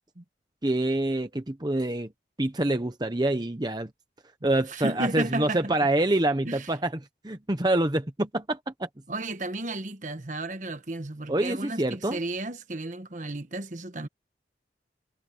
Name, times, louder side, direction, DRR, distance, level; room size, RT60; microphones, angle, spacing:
voice 1, 0.6-2.1 2.4-3.9 4.4-6.9 7.2-8.9 11.3-12.2, right 1 dB, 25° right, 0.9 m, -26 dB
voice 2, 4.4-5.7 6.4-6.7 9.1-14.1, right 2 dB, 45° right, 1.3 m, -33 dB
head